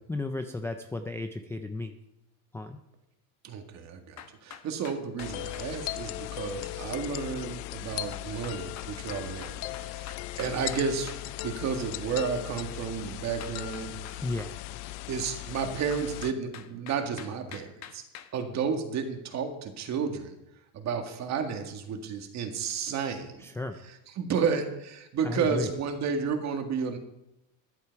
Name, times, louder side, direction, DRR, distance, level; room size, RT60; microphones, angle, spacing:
voice 1, 0.1-1.9 2.5-2.8 14.2-14.5 23.4-23.8 25.2-25.7, left 2 dB, 5° left, 6 dB, 0.4 m, -34 dB
voice 2, 3.4-11.1 11.4-14.2 15.1-18.0 18.3-20.3 20.7-23.4 24.2-27.0, right 6 dB, 40° right, 5 dB, 1.9 m, -32 dB
sound 1, 4.2-5.7 8.1-11.2 13.4-14.5 15.6-18.3, left 10 dB, 40° left, 1.1 m, -46 dB
sound 2, 5.2-16.3, left 15 dB, 85° left, 0.7 m, -38 dB
14.5 x 10.5 x 4.6 m, 0.88 s
cardioid pair, 150°, 41 cm